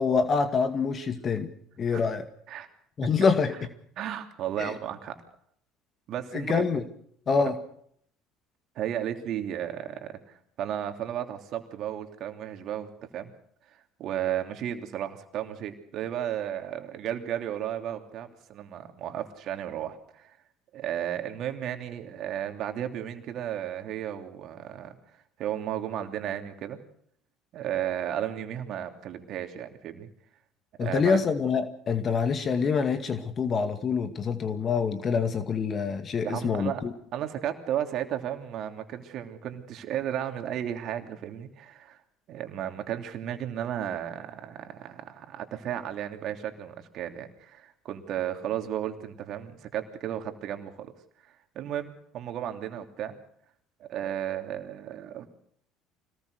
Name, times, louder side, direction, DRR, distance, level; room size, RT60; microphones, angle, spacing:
voice 1, 0.0-1.5 1.8-2.2 3.0-3.5 4.6-4.7 6.3-6.8 7.3-7.5 30.8-36.9, left 5 dB, 40° left, 8 dB, 2.2 m, -26 dB
voice 2, 4.0-5.2 6.1-6.6 7.3-7.5 8.7-13.3 13.7-20.4 20.7-26.8 27.5-30.1 30.8-31.2 36.2-36.8 37.1-42.0 42.3-50.9 51.3-53.2 53.8-55.3, right 10 dB, 55° right, 5 dB, 3.0 m, -34 dB
25.5 x 19.5 x 6.7 m, 0.67 s
hypercardioid pair, 65°, 0 cm